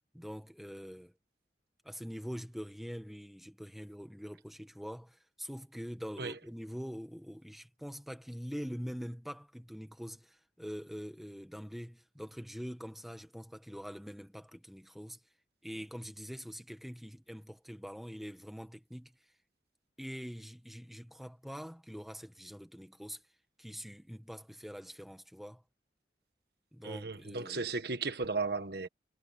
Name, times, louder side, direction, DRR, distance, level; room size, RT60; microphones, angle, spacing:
voice 1, 0.1-1.1 1.8-15.2 15.6-19.1 20.0-23.2 23.6-25.6 26.7-27.7, equal, ahead, 1.7 m, -44 dB
voice 2, 26.8-28.9, right 4 dB, 60° right, 1.4 m, -35 dB
head